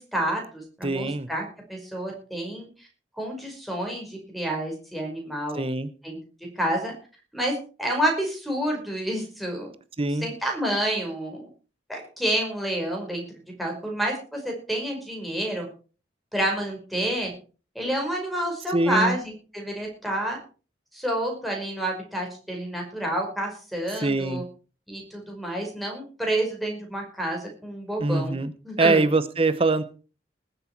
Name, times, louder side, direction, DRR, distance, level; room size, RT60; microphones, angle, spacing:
voice 1, 0.0-2.9 3.2-5.6 6.0-6.2 6.6-6.9 7.3-9.7 10.2-11.5 11.9-13.2 13.6-15.7 16.3-17.3 17.8-20.4 20.9-24.4 24.9-28.4 28.6-29.0, right 1 dB, ahead, 1 dB, 5.4 m, -29 dB
voice 2, 0.8-1.3 5.6-5.9 10.0-10.3 18.7-19.2 24.0-24.4 28.0-28.5 28.8-29.8, right 2 dB, 30° right, 13 dB, 0.9 m, -23 dB
20.0 x 8.1 x 4.6 m, 0.37 s
head